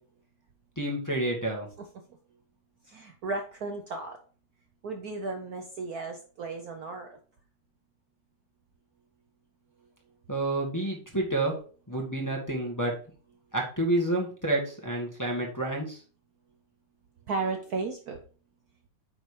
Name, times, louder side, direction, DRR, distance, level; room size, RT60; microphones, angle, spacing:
voice 1, 0.8-1.7 10.3-11.5 11.9-12.9 13.5-16.0, right 1 dB, 10° left, -2 dB, 1.5 m, -29 dB
voice 2, 2.9-4.2 4.8-7.1 17.3-18.2, right 3 dB, 60° right, 4 dB, 1.2 m, -34 dB
8.9 x 4.0 x 4.9 m, 0.40 s
omnidirectional pair, 2.2 m